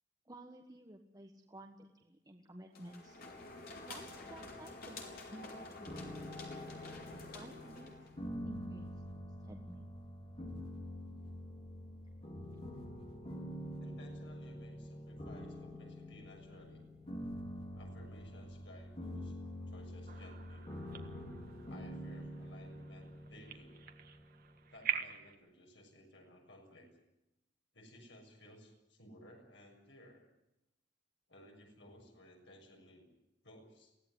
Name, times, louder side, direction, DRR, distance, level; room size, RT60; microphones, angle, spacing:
voice 1, 0.2-3.2 3.8-6.1 7.3-7.9 8.4-8.9 9.4-9.9, right 1 dB, 20° right, 2 dB, 1.4 m, -53 dB
sound 1, 2.7-8.2, left 2 dB, 55° left, 4.3 m, -49 dB
sound 2, 5.9-24.8, equal, 35° left, 4.4 m, -46 dB
voice 2, 13.8-16.9 17.7-19.3 19.7-20.7 21.7-23.8 24.7-26.9 27.7-30.2 31.3-33.1 33.4-33.9, left 1 dB, 80° left, 1 dB, 6.9 m, -58 dB
sound 3, 20.1-25.4, right 8 dB, 55° right, 1.7 m, -44 dB
23.5 x 16.5 x 9.8 m, 0.94 s
head